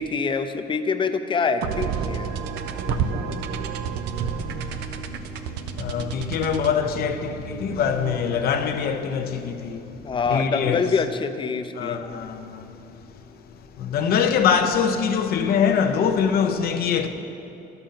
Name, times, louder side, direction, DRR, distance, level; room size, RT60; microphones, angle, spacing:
voice 1, 0.0-2.3 10.0-12.0, left 5 dB, 30° left, 0.6 m, -25 dB
sound 1, 1.6-8.9, right 6 dB, 85° right, 0.6 m, -31 dB
voice 2, 2.9-3.6 5.7-9.9 10.3-10.8 11.8-12.7 13.8-17.1, left 7 dB, 65° left, 0.8 m, -24 dB
11.5 x 6.9 x 5.7 m
cardioid pair, 110°, 17 cm